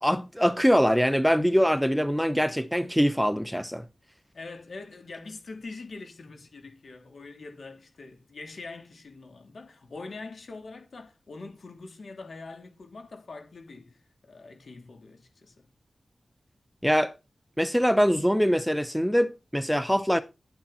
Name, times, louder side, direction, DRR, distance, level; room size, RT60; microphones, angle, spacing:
voice 1, 0.0-3.8 16.8-17.1 17.6-20.2, equal, ahead, 0.8 m, -23 dB
voice 2, 4.3-15.6, left 3 dB, 75° left, 3.2 m, -43 dB
11.0 x 8.9 x 4.2 m
wide cardioid pair, 110°, 0 cm